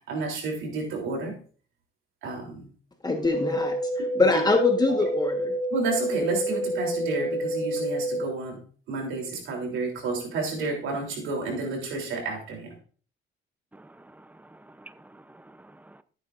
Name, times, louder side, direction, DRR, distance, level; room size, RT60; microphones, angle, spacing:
voice 1, 0.1-1.4 2.2-2.7 5.7-8.6 8.9-12.7, right 3 dB, 85° right, 0 dB, 3.4 m, -31 dB
voice 2, 3.0-5.5, left 3 dB, 20° left, 4 dB, 1.4 m, -24 dB
sound 1, 3.2-8.3, right 1 dB, 40° left, 2.5 m, -28 dB
voice 3, 13.7-16.0, right 2 dB, 10° right, 13 dB, 0.6 m, -51 dB
14.0 x 8.9 x 2.6 m, 0.42 s
cardioid pair, 90°, 20 cm